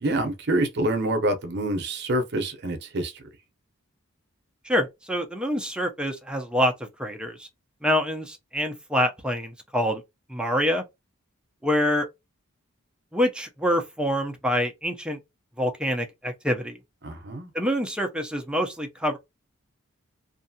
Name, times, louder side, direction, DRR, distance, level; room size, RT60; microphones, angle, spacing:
voice 1, 0.0-3.2 17.0-17.5, right 1 dB, 55° right, 0.7 m, -26 dB
voice 2, 4.6-7.5 7.8-10.0 10.3-10.8 11.6-12.1 13.1-15.2 15.6-16.8 17.5-19.2, equal, 5° right, 0.5 m, -26 dB
2.6 x 2.3 x 2.7 m
head